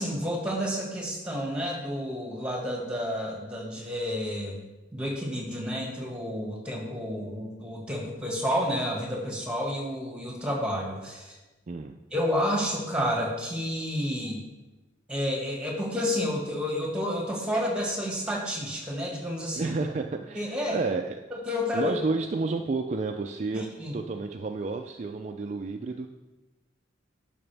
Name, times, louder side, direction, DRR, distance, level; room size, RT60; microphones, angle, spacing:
voice 1, 0.0-4.6 4.9-11.3 12.1-14.4 15.1-19.7 20.4-20.8 21.3-21.9 23.5-23.9, equal, 5° right, -2 dB, 1.7 m, -30 dB
voice 2, 11.7-12.0 19.5-21.2 21.7-23.6 23.9-26.1, right 3 dB, 40° right, 4 dB, 0.4 m, -31 dB
11.0 x 5.8 x 3.4 m, 1.1 s
head